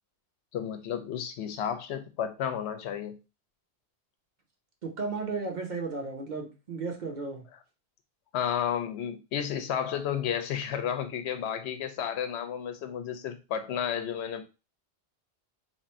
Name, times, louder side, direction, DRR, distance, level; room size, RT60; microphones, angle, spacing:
voice 1, 0.5-3.2 8.3-14.4, left 9 dB, 80° left, 8 dB, 0.9 m, -32 dB
voice 2, 4.8-7.4, right 4 dB, 45° right, 2 dB, 0.8 m, -34 dB
3.1 x 2.5 x 4.2 m, 0.29 s
omnidirectional pair, 1.1 m